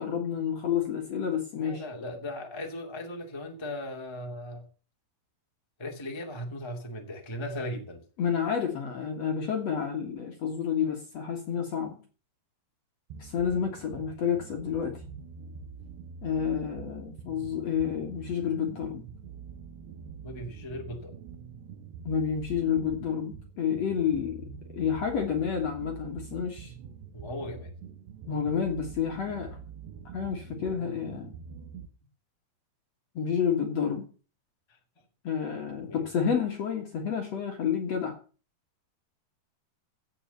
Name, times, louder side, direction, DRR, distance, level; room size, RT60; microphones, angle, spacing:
voice 1, 0.0-1.8 8.2-12.0 13.2-15.0 16.2-19.0 22.0-24.4 24.7-26.7 28.3-29.6 30.1-31.3 33.2-34.1 35.2-38.1, left 7 dB, 50° left, 3 dB, 2.3 m, -29 dB
voice 2, 1.6-4.6 5.8-8.0 20.2-21.1 27.1-27.7 34.7-34.8 35.9-36.0, left 1 dB, 10° left, 2 dB, 1.4 m, -37 dB
sound 1, 13.1-31.9, right 6 dB, 80° right, 3.0 m, -45 dB
16.0 x 5.6 x 6.9 m, 0.38 s
omnidirectional pair, 4.7 m